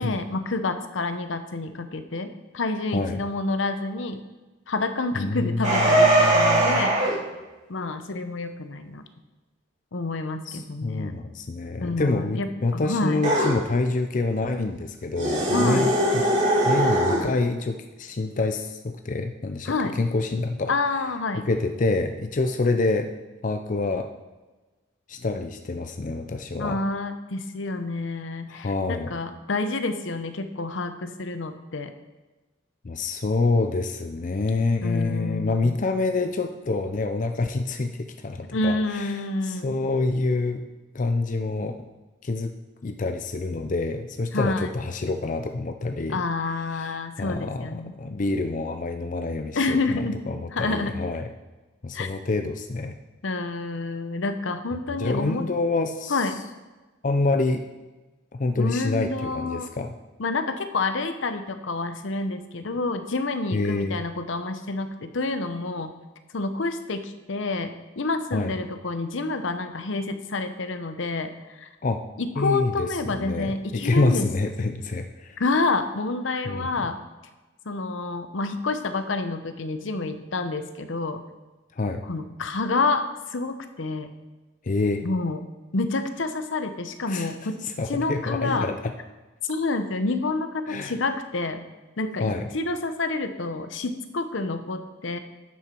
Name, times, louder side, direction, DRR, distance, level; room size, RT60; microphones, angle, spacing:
voice 1, 0.0-4.2 4.7-7.2 7.7-9.0 9.9-11.2 11.8-13.2 15.5-15.9 19.7-20.0 20.7-21.5 26.6-31.9 34.8-35.8 38.5-39.8 44.3-44.7 46.1-47.9 49.5-50.2 50.5-50.9 51.9-52.1 53.2-55.4 56.1-56.4 58.6-59.7 60.2-65.9 66.3-71.7 72.2-74.3 75.4-77.0 77.7-81.2 82.0-84.1 85.0-85.4 85.7-87.6 87.9-88.7 89.4-91.6 92.0-95.2, left 3 dB, 70° left, 9 dB, 0.8 m, -28 dB
voice 2, 5.1-6.8 10.5-16.2 16.6-20.7 21.3-23.1 23.4-24.1 25.1-26.8 28.5-29.1 32.8-40.6 40.9-41.8 42.2-42.5 42.8-46.2 46.8-51.3 51.8-53.0 55.0-56.3 57.0-57.6 58.3-60.0 63.5-64.0 68.3-68.5 71.8-72.0 72.4-75.4 76.4-76.9 81.7-82.0 84.6-85.0 87.1-87.3 87.6-88.9 90.7-91.0 92.2-92.5, left 3 dB, 40° left, 6 dB, 0.5 m, -27 dB
sound 1, 5.6-7.2 13.2-13.6 15.1-17.2, right 1 dB, 35° right, 2.7 m, -20 dB
11.5 x 6.8 x 4.5 m, 1.2 s
head